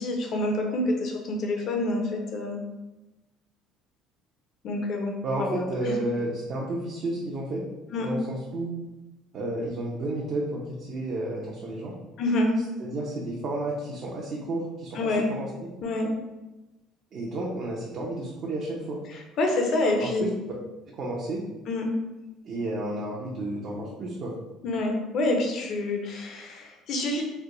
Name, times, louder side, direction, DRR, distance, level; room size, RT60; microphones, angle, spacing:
voice 1, 0.0-2.6 4.6-5.1 5.4-5.9 7.9-8.1 12.2-12.5 14.9-15.2 15.8-16.1 19.1-20.3 21.7-21.8 24.6-27.2, left 2 dB, 60° left, 2 dB, 0.7 m, -27 dB
voice 2, 5.2-7.6 8.0-8.8 9.3-11.9 12.8-15.5 17.1-19.0 20.0-20.3 20.9-21.4 22.4-24.3, right 2 dB, 55° right, -4 dB, 0.7 m, -31 dB
3.3 x 2.2 x 3.9 m, 1.0 s
supercardioid pair, 90°, 0 cm